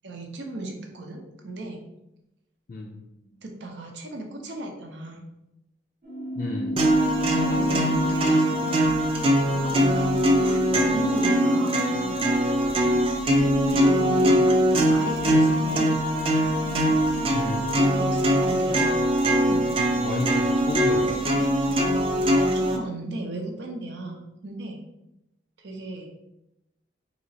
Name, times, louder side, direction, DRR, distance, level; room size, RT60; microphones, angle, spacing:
voice 1, 0.0-1.8 3.4-5.3 7.2-8.9 9.5-12.2 13.1-14.4 14.9-16.0 17.9-19.0 19.4-19.6 21.8-22.0 22.4-24.2 24.4-24.8 25.6-26.1, right 2 dB, 90° right, 2 dB, 0.7 m, -36 dB
voice 2, 2.7-3.0 6.4-6.8 17.3-17.7 20.0-21.2, left 2 dB, 45° left, 0 dB, 0.3 m, -31 dB
sound 1, 6.0-22.2, right 1 dB, 55° right, 0.8 m, -32 dB
sound 2, 6.8-22.8, equal, 30° right, 0.4 m, -22 dB
4.0 x 2.9 x 2.7 m, 0.89 s
head